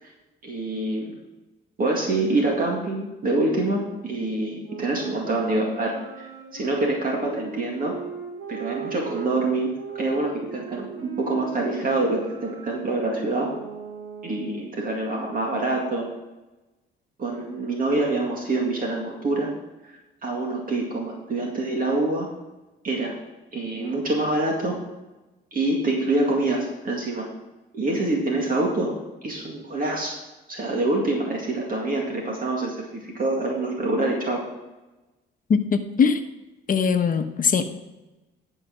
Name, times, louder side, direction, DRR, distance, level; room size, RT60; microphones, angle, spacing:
voice 1, 0.4-1.2 1.8-6.3 6.5-8.0 8.5-13.5 14.2-16.1 17.2-19.5 20.2-22.3 22.8-23.2 23.5-24.8 25.5-27.3 27.7-29.0 29.2-30.2 30.5-34.4, right 2 dB, 45° right, -1 dB, 2.1 m, -26 dB
sound 1, 4.6-9.3 9.8-14.7, right 5 dB, 90° right, 2.7 m, -38 dB
voice 2, 35.5-36.2 36.7-37.6, left 6 dB, 45° left, 8 dB, 1.0 m, -21 dB
11.0 x 5.0 x 6.2 m, 1.1 s
cardioid pair, 90°, 20 cm